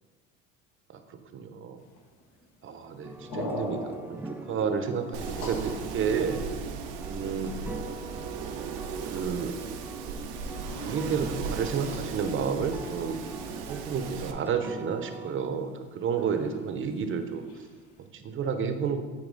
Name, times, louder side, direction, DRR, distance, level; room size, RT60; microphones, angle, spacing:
voice 1, 0.9-1.8 2.6-6.4 7.1-7.5 9.1-9.6 10.8-13.2 13.7-17.5 18.1-19.0, right 6 dB, 40° right, 8 dB, 0.7 m, -31 dB
sound 1, 1.8-18.1, left 1 dB, 70° left, 1.4 m, -45 dB
sound 2, 3.0-15.3, right 2 dB, 5° right, 0.3 m, -43 dB
Wind, 5.1-14.3, right 6 dB, 85° right, 0.6 m, -37 dB
8.6 x 3.0 x 3.9 m, 1.4 s
supercardioid pair, 85°, 32 cm